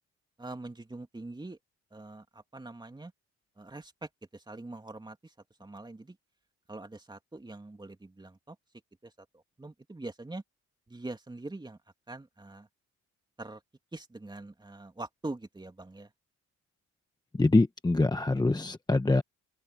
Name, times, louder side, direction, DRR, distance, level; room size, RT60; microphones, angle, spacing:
voice 1, 0.4-1.6 1.9-3.1 3.6-5.3 5.6-6.2 6.7-8.6 9.0-10.4 10.9-11.8 12.1-12.7 13.4-13.6 13.9-16.1, right 2 dB, 15° right, 2.9 m, -43 dB
voice 2, 17.3-19.2, left 2 dB, 15° left, 1.2 m, -24 dB
open air
cardioid pair, 90°, 30 cm